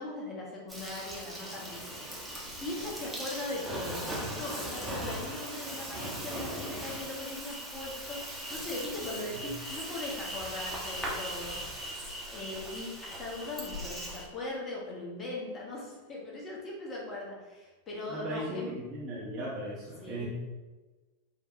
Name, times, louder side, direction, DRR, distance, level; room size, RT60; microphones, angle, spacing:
voice 1, 0.0-4.0 4.4-11.6 12.3-18.7 20.0-20.3, left 2 dB, 25° left, -3 dB, 1.0 m, -40 dB
Insect, 0.7-14.3, equal, ahead, 0.9 m, -39 dB
voice 2, 18.1-20.3, right 1 dB, 35° right, -5 dB, 0.7 m, -37 dB
5.0 x 2.3 x 2.7 m, 1.2 s
figure-of-eight pair, 90°, 0 cm